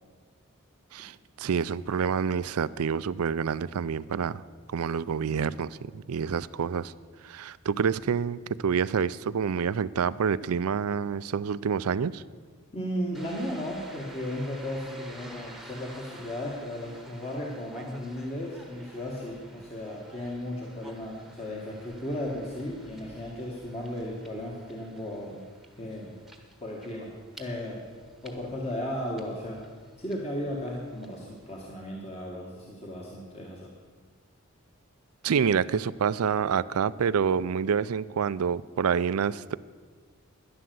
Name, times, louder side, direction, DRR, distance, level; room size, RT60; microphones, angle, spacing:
voice 1, 0.9-4.4 4.7-6.9 7.2-12.2 35.2-39.6, right 6 dB, 90° right, 18 dB, 0.4 m, -27 dB
voice 2, 12.7-25.4 25.8-26.1 26.6-27.1 27.4-27.8 28.2-29.6 30.0-33.7, left 1 dB, 30° left, -2 dB, 1.5 m, -35 dB
sound 1, 13.1-31.7, right 1 dB, ahead, 1.1 m, -51 dB
11.5 x 10.5 x 7.8 m, 1.5 s
head